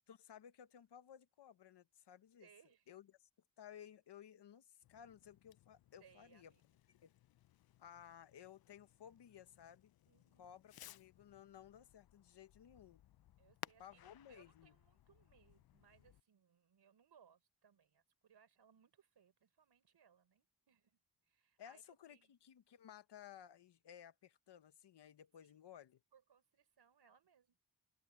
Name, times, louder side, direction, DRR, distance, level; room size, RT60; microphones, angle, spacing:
voice 1, 0.0-2.5 2.9-3.1 3.6-6.5 7.0-7.1 7.8-9.9 10.4-13.0 13.8-14.7 21.6-26.0, left 9 dB, 80° left, 1.2 m, -58 dB
voice 2, 2.4-3.0 6.0-6.6 10.1-10.6 13.4-22.3 25.4-25.5 26.1-27.6, right 8 dB, 80° right, 5.2 m, -70 dB
Fireworks, 4.8-16.2, left 13 dB, 65° left, 0.5 m, -61 dB
open air
wide cardioid pair, 140°, 40 cm